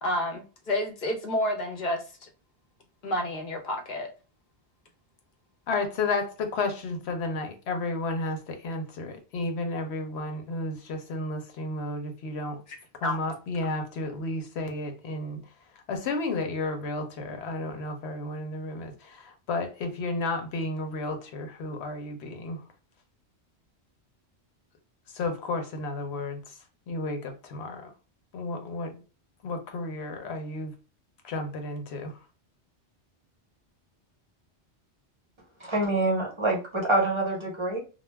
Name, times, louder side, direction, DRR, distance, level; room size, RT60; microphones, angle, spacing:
voice 1, 0.0-2.3 3.0-4.1 12.7-12.8 13.0-13.2, left 1 dB, 45° left, 0.7 m, -30 dB
voice 2, 5.7-12.6 13.0-15.4 15.9-22.6 25.1-26.6 26.9-27.9 28.3-29.0 29.4-30.7 31.2-32.2, left 2 dB, 75° left, 0.9 m, -32 dB
voice 3, 35.6-37.8, right 2 dB, 30° right, 0.7 m, -26 dB
2.3 x 2.2 x 3.1 m
omnidirectional pair, 1.1 m